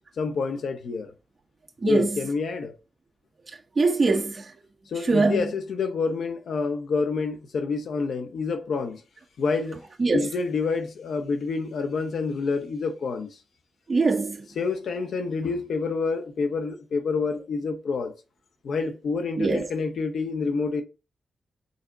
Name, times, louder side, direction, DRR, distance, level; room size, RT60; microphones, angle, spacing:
voice 1, 0.2-1.1 1.9-2.7 4.9-9.0 9.4-9.8 10.1-13.4 14.6-18.1 18.6-20.8, left 4 dB, 80° left, 1.0 m, -28 dB
voice 2, 1.8-2.2 3.7-4.5 5.0-5.5 10.0-10.3 13.9-14.4 19.4-19.7, right 3 dB, 35° right, 1.7 m, -22 dB
5.6 x 4.3 x 3.8 m
cardioid pair, 95°, 0 cm